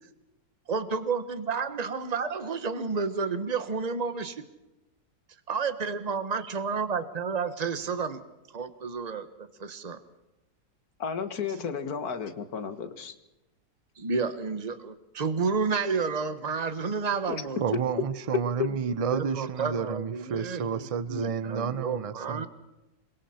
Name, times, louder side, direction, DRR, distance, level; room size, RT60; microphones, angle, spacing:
voice 1, 0.7-4.3 5.5-8.2 8.5-10.0 14.0-18.0 19.1-22.5, right 5 dB, 25° right, 11 dB, 1.2 m, -31 dB
voice 2, 11.0-13.1 18.6-18.7, left 7 dB, 65° left, 10 dB, 1.8 m, -32 dB
voice 3, 17.6-22.5, right 6 dB, 40° right, 15 dB, 0.4 m, -30 dB
27.5 x 22.5 x 4.4 m, 0.98 s
omnidirectional pair, 1.7 m